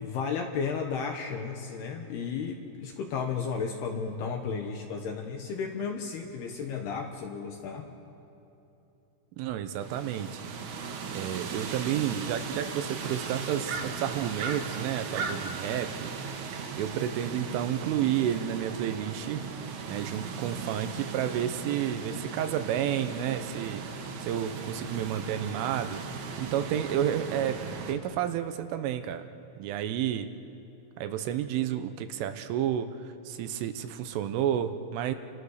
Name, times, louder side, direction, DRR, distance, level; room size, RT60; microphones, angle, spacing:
voice 1, 0.0-7.9, left 5 dB, 70° left, 3 dB, 2.7 m, -33 dB
voice 2, 9.4-10.4 11.1-16.1 16.7-19.4 19.9-26.0 26.4-27.6 27.9-29.2 29.6-30.3 31.0-35.1, right 10 dB, 80° right, 9 dB, 3.3 m, -31 dB
sound 1, 9.8-27.9, right 5 dB, 60° right, 3.2 m, -37 dB
29.0 x 25.5 x 6.5 m, 2.9 s
omnidirectional pair, 5.9 m